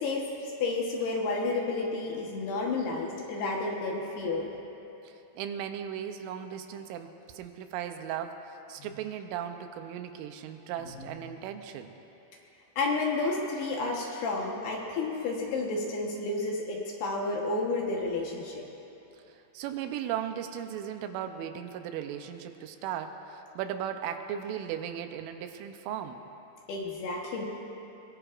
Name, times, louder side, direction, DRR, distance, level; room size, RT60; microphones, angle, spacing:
voice 1, 0.0-4.5 8.8-8.9 10.9-11.1 12.8-18.7 26.7-27.4, left 3 dB, 70° left, -1 dB, 2.8 m, -31 dB
voice 2, 5.0-11.9 19.3-26.2, right 9 dB, 85° right, 7 dB, 3.2 m, -37 dB
22.0 x 22.0 x 2.5 m, 2.9 s
omnidirectional pair, 5.6 m